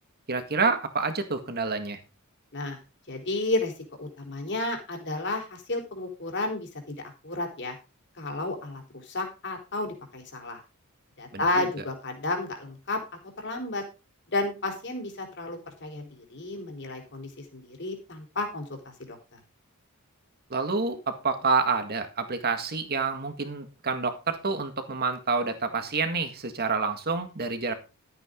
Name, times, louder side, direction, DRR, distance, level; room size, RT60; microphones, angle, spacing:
voice 1, 0.3-2.0 11.3-11.7 20.5-27.7, right 4 dB, 45° right, 8 dB, 1.9 m, -28 dB
voice 2, 3.1-3.7 4.0-7.0 7.2-7.7 8.2-10.6 11.2-13.0 13.4-13.8 14.3-19.4, left 2 dB, 55° left, 3 dB, 4.0 m, -32 dB
13.0 x 9.1 x 3.8 m, 0.30 s
head